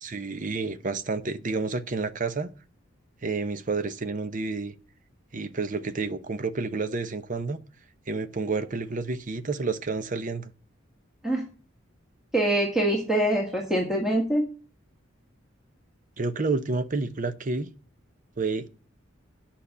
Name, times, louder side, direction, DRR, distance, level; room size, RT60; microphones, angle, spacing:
voice 1, 0.0-2.5 3.2-4.7 5.3-7.6 8.1-10.5 16.2-17.7 18.4-18.7, right 3 dB, 40° right, 0.8 m, -30 dB
voice 2, 12.3-14.4, right 1 dB, 5° right, 1.7 m, -24 dB
9.0 x 5.8 x 8.3 m
head